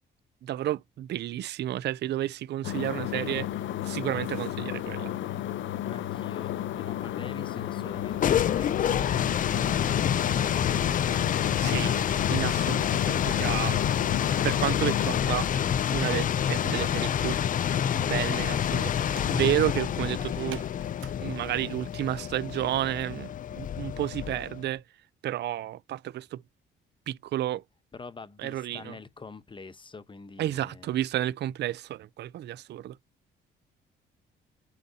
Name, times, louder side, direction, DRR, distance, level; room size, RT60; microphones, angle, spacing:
voice 1, 0.4-3.5 3.8-5.1 11.6-11.9 12.3-13.8 14.1-15.5 15.9-17.4 17.9-20.6 21.2-24.8 25.2-26.4 27.1-27.6 28.4-29.0 30.4-33.0, right 13 dB, 60° right, 0.4 m, -31 dB
sound 1, 2.6-15.2, left 12 dB, 75° left, 0.7 m, -33 dB
voice 2, 5.9-9.0 9.5-11.3 27.9-31.3, left 4 dB, 25° left, 0.9 m, -45 dB
sound 2, 7.9-24.6, left 9 dB, 45° left, 0.4 m, -27 dB
sound 3, 14.1-21.1, right 12 dB, 75° right, 0.9 m, -53 dB
12.0 x 4.0 x 2.7 m
cardioid pair, 90°, 20 cm